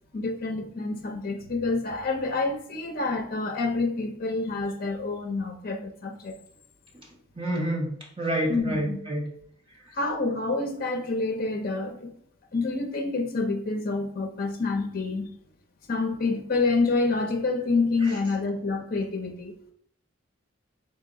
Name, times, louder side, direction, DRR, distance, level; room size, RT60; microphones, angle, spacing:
voice 1, 0.1-6.4 8.5-9.0 9.9-12.1 12.5-15.3 15.9-19.5, left 3 dB, 45° left, 5 dB, 0.6 m, -27 dB
voice 2, 7.4-9.3, right 1 dB, 25° right, -2 dB, 1.0 m, -28 dB
4.1 x 2.9 x 3.7 m, 0.63 s
head